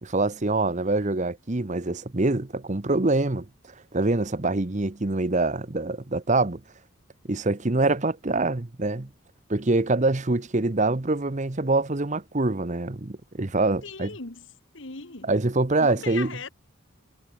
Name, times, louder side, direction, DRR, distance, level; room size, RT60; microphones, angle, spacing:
voice 1, 0.0-3.5 3.9-6.6 7.3-9.1 9.5-14.1 15.2-16.4, right 2 dB, 35° right, 0.9 m, -25 dB
voice 2, 13.8-14.5 14.7-15.3 15.8-16.5, left 4 dB, 60° left, 1.9 m, -38 dB
head